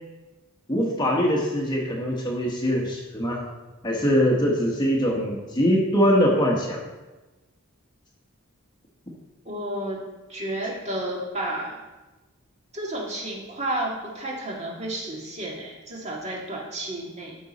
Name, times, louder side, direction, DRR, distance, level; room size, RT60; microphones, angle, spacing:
voice 1, 0.7-3.4 3.8-6.8 10.6-10.7, equal, 20° left, -1 dB, 1.2 m, -22 dB
voice 2, 9.5-10.0 10.3-11.8 12.7-17.4, right 1 dB, 30° right, -2 dB, 1.9 m, -31 dB
13.0 x 5.3 x 4.2 m, 1.1 s
head